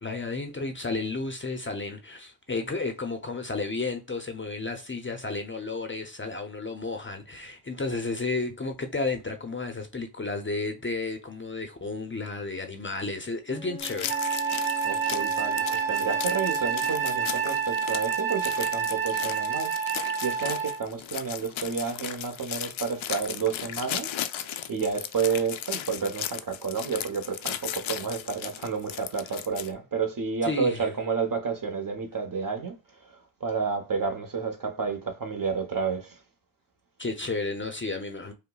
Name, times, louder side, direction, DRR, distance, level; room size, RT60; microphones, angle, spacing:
voice 1, 0.0-14.1 30.4-30.8 37.0-38.3, left 3 dB, 25° left, 0.6 m, -32 dB
Wind instrument woodwind instrument, 13.5-17.8, left 1 dB, 15° right, 1.0 m, -44 dB
sound 1, 13.8-29.7, left 11 dB, 80° left, 0.5 m, -36 dB
Wind instrument woodwind instrument 2, 14.1-20.9, right 7 dB, 75° right, 1.0 m, -28 dB
voice 2, 14.8-19.7 20.2-24.1 24.7-32.7 33.4-36.1, right 5 dB, 45° right, 1.0 m, -30 dB
5.3 x 2.1 x 2.3 m
cardioid pair, 80°, 46 cm